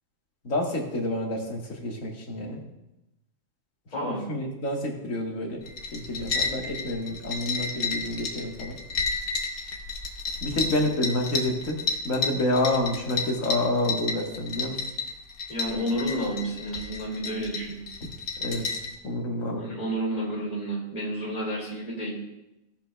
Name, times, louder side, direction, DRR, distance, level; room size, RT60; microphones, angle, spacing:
voice 1, 0.4-2.6 4.0-5.6 5.9-8.8 10.4-11.8 12.0-14.8 18.0-18.1 18.4-18.7 19.0-19.7, left 1 dB, 65° left, 0 dB, 1.8 m, -28 dB
sound 1, 5.6-18.9, left 4 dB, 85° left, 1.6 m, -32 dB
voice 2, 15.5-17.8 19.6-22.2, right 1 dB, 25° left, -5 dB, 2.4 m, -30 dB
17.5 x 7.0 x 2.2 m, 0.92 s
omnidirectional pair, 1.5 m